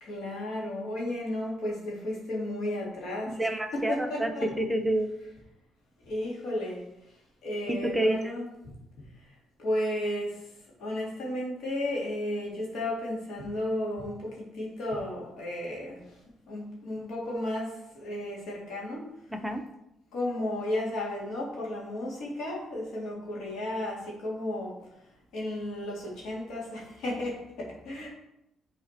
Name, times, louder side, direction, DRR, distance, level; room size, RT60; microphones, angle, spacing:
voice 1, 0.0-3.3 3.7-4.5 6.1-6.8 7.4-8.5 9.6-10.4 10.8-16.0 16.5-19.0 20.1-24.7 25.3-28.1, left 1 dB, 80° left, -3 dB, 2.5 m, -33 dB
voice 2, 3.3-4.3 4.6-5.1 7.7-8.3 19.3-19.6, right 1 dB, 5° right, 4 dB, 0.7 m, -28 dB
7.8 x 4.0 x 4.3 m, 0.84 s
cardioid pair, 90°, 0 cm